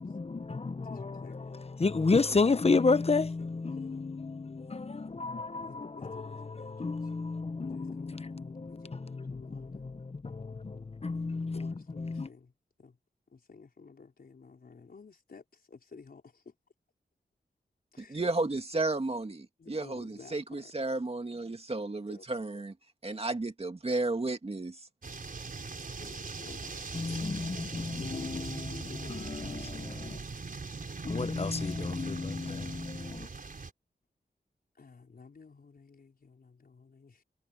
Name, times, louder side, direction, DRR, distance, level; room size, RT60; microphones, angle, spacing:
voice 1, 0.0-12.3 26.9-30.2 31.0-33.3, left 4 dB, 35° left, 0.9 m, -32 dB
voice 2, 0.8-1.6 2.9-4.1 5.6-7.1 7.7-10.0 10.4-10.6 11.5-12.5 12.8-13.0 13.3-16.5 17.9-18.2 19.6-20.7 22.1-22.2 25.9-27.2 27.5-27.6 28.1-29.2 34.7-37.2, left 4 dB, 65° left, 4.9 m, -53 dB
voice 3, 18.0-22.7 23.0-24.8, right 2 dB, 35° right, 2.4 m, -33 dB
sound 1, 25.0-33.7, right 4 dB, 55° right, 4.8 m, -41 dB
wide cardioid pair, 70°, 17 cm